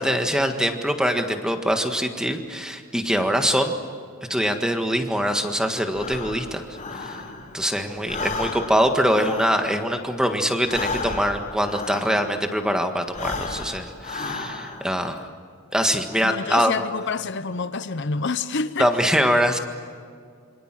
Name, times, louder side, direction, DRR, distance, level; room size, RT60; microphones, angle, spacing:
voice 1, 0.0-3.8 4.3-6.7 6.9-7.2 7.5-15.2 15.7-16.7 18.8-19.6, equal, 5° right, 1.6 m, -23 dB
Breathing, 5.9-7.7 8.0-12.6 13.0-15.0, left 3 dB, 35° left, 4.0 m, -33 dB
voice 2, 16.2-18.9, left 4 dB, 55° left, 0.7 m, -27 dB
27.5 x 25.0 x 7.6 m
head